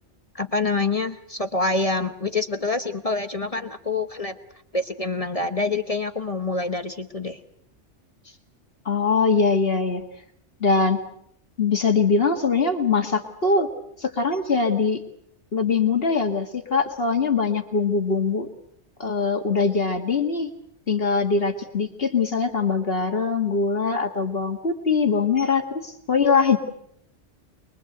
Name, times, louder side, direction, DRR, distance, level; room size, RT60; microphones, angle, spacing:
voice 1, 0.3-4.4 4.7-7.4, left 3 dB, 30° left, 8 dB, 1.2 m, -26 dB
voice 2, 8.9-10.1 10.6-11.0 11.6-13.7 14.0-15.0 15.5-18.5 19.0-20.5 20.9-26.6, left 4 dB, 55° left, 5 dB, 2.1 m, -22 dB
24.0 x 22.5 x 7.9 m, 0.70 s
omnidirectional pair, 1.2 m